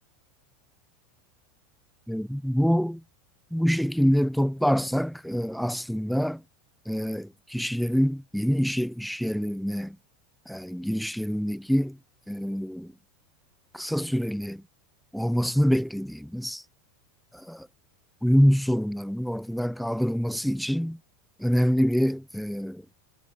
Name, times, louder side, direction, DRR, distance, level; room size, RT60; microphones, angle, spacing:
voice 1, 2.1-3.0 3.5-6.4 6.8-10.0 10.4-12.0 12.3-12.9 13.7-14.6 15.1-16.6 17.3-17.7 18.2-21.0 21.4-22.8, equal, ahead, 4.8 m, -26 dB
supercardioid pair, 145°, 0 cm